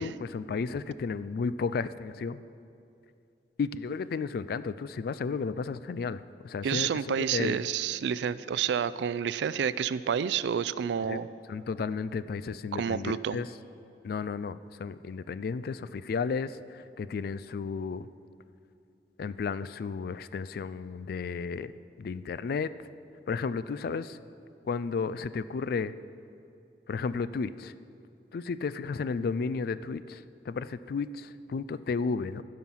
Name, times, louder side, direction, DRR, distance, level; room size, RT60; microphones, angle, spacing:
voice 1, 0.0-2.4 3.6-6.9 7.2-7.7 11.1-11.2 11.5-13.5 14.0-18.1 19.2-21.7 22.0-22.7 23.3-24.2 24.6-25.9 26.9-27.7 28.3-32.4, left 5 dB, 60° left, 15 dB, 0.3 m, -33 dB
voice 2, 6.6-11.3 12.7-13.4, right 7 dB, 75° right, 16 dB, 0.3 m, -29 dB
15.0 x 5.7 x 5.6 m, 2.6 s
head